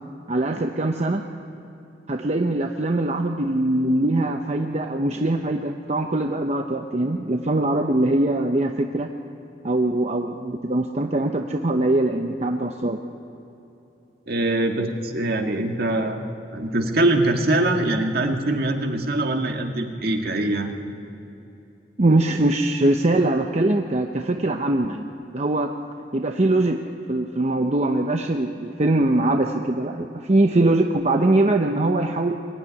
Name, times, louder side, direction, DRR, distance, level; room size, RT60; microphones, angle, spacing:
voice 1, 0.3-1.2 2.1-9.1 9.6-13.0 22.0-25.7 26.1-26.8 27.1-32.3, right 2 dB, 40° right, 4 dB, 0.8 m, -22 dB
voice 2, 14.3-16.2 16.5-20.7, right 2 dB, 60° right, 3 dB, 1.8 m, -23 dB
23.0 x 14.0 x 9.8 m, 2.9 s
head